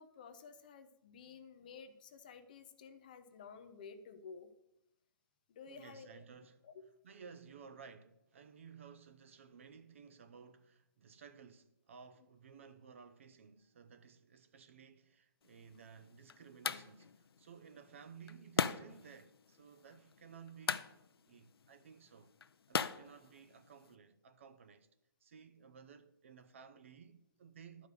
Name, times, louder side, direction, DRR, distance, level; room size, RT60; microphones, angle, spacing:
voice 1, 0.0-4.5 5.5-6.2 6.6-6.7, left 5 dB, 20° left, 0.5 m, -53 dB
voice 2, 5.7-6.7 7.0-20.9 21.3-22.3 22.7-24.9 25.2-27.9, right 6 dB, 35° right, 0.5 m, -56 dB
sound 1, 15.4-23.9, left 6 dB, 90° left, 0.6 m, -42 dB
12.0 x 5.0 x 6.6 m
hypercardioid pair, 175°, 12 cm